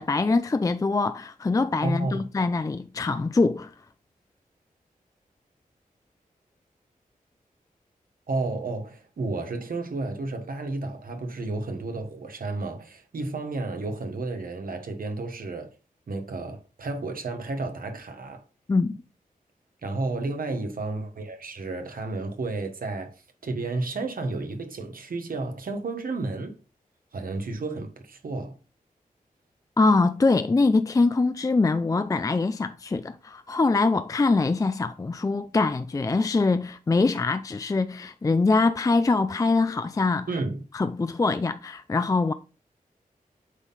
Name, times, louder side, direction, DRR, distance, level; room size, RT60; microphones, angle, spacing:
voice 1, 0.0-3.7 18.7-18.9 29.8-40.3 40.7-42.3, left 3 dB, 25° left, 0.4 m, -23 dB
voice 2, 1.8-2.3 8.3-15.7 16.1-18.4 19.8-23.1 23.4-26.5 27.1-28.5 40.3-40.6, right 3 dB, 75° right, 1.3 m, -32 dB
8.1 x 3.8 x 4.0 m
wide cardioid pair, 90°, 15 cm